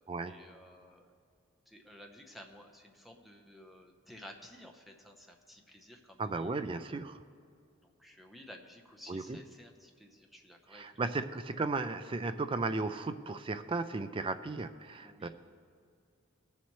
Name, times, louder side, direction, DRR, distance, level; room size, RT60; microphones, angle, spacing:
voice 1, 0.3-1.1 1.7-6.6 7.8-11.1 15.0-15.3, equal, ahead, 2 dB, 0.8 m, -54 dB
voice 2, 6.2-7.2 9.1-9.4 10.7-15.3, right 3 dB, 25° right, 10 dB, 0.4 m, -35 dB
18.0 x 7.2 x 3.1 m, 2.3 s
head